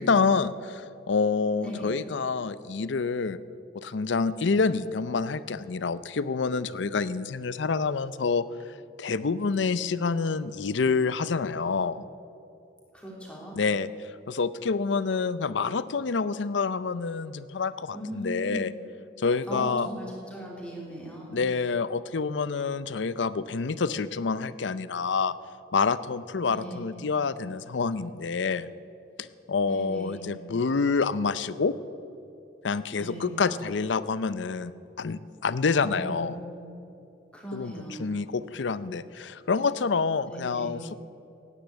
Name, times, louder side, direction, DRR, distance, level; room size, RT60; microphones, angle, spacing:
voice 1, 0.0-3.4 3.7-12.1 13.5-18.7 19.2-19.9 21.3-25.3 25.7-28.7 29.2-31.7 32.6-34.7 35.0-36.4 37.5-37.7 38.0-40.9, left 4 dB, 80° left, 16 dB, 0.6 m, -27 dB
voice 2, 12.9-13.6 17.9-18.7 19.5-21.3 26.5-26.8 29.6-30.3 32.9-33.3 35.7-36.6 37.3-38.1 40.3-40.7, right 1 dB, 5° left, -3 dB, 3.3 m, -39 dB
16.5 x 10.0 x 8.2 m, 2.7 s
head